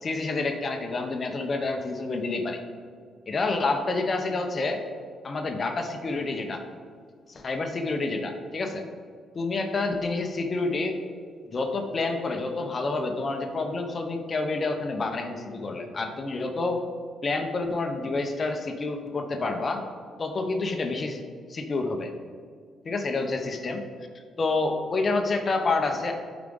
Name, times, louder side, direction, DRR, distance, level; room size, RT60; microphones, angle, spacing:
voice 1, 0.0-2.6 3.3-4.8 5.2-6.6 7.3-8.8 9.3-11.0 11.5-16.8 17.2-19.8 20.2-21.2 21.5-22.1 22.8-23.8 24.4-26.2, left 3 dB, 40° left, 5 dB, 0.9 m, -28 dB
8.4 x 4.9 x 3.9 m, 2.1 s
cardioid pair, 90°, 0 cm